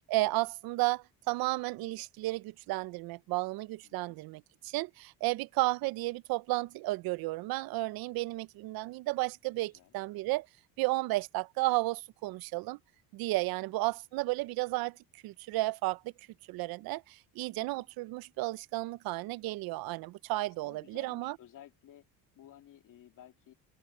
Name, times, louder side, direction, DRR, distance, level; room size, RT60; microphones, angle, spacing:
voice 1, 0.1-10.5 10.8-12.8 13.1-15.0 15.2-16.0 16.5-21.4, right 20 dB, 75° right, 0.6 m, -33 dB
voice 2, 3.8-4.2 9.6-9.9 13.6-14.0 17.6-17.9 20.4-23.5, left 11 dB, 60° left, 2.3 m, -56 dB
cardioid pair, 125°, 36 cm